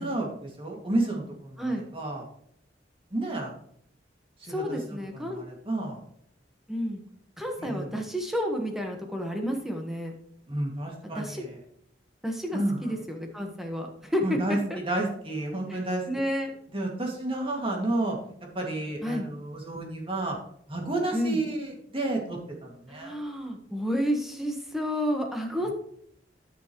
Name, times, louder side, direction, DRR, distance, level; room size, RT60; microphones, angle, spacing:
voice 1, 0.0-2.2 3.1-3.5 4.4-6.0 7.6-8.0 10.5-11.6 12.5-12.9 14.2-16.0 16.7-18.2 18.5-20.4 20.7-23.2, right 2 dB, 30° right, -1 dB, 2.3 m, -31 dB
voice 2, 4.5-5.4 6.7-7.0 7.4-10.1 11.0-11.5 12.2-14.8 15.7-16.5 19.0-19.3 21.1-21.4 22.9-25.7, equal, ahead, 2 dB, 1.4 m, -31 dB
13.5 x 6.2 x 3.2 m, 0.67 s
head